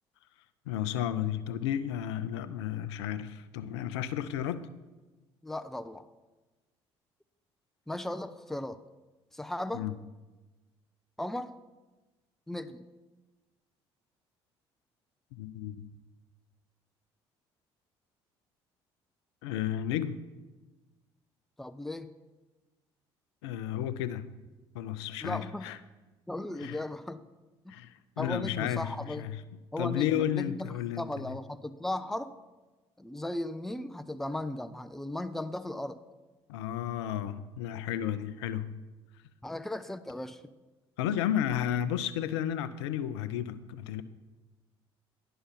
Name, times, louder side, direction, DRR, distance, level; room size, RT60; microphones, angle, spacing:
voice 1, 0.7-4.7 9.7-10.0 15.3-16.0 19.4-20.2 23.4-24.3 24.7-25.8 26.6-26.8 27.7-29.4 29.8-31.3 36.5-38.8 41.0-44.0, left 10 dB, 75° left, 0.5 m, -33 dB
voice 2, 5.4-6.0 7.9-8.8 9.3-9.8 11.2-11.5 12.5-12.9 21.6-22.1 25.2-25.7 26.3-27.2 27.6-27.8 28.2-29.3 29.7-30.7 31.0-32.3 33.0-36.0 39.4-40.4, left 1 dB, ahead, 0.5 m, -36 dB
9.9 x 5.6 x 5.8 m
hypercardioid pair, 50°, 14 cm